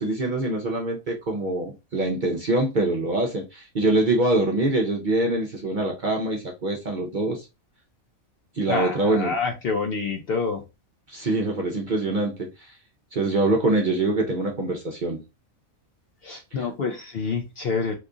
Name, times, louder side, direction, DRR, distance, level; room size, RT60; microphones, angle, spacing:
voice 1, 0.0-7.4 8.6-9.3 11.1-12.5 13.1-15.2, right 2 dB, 50° right, 0.6 m, -24 dB
voice 2, 8.7-10.6 16.2-17.9, left 4 dB, 60° left, 0.6 m, -27 dB
3.0 x 2.4 x 3.7 m
omnidirectional pair, 1.4 m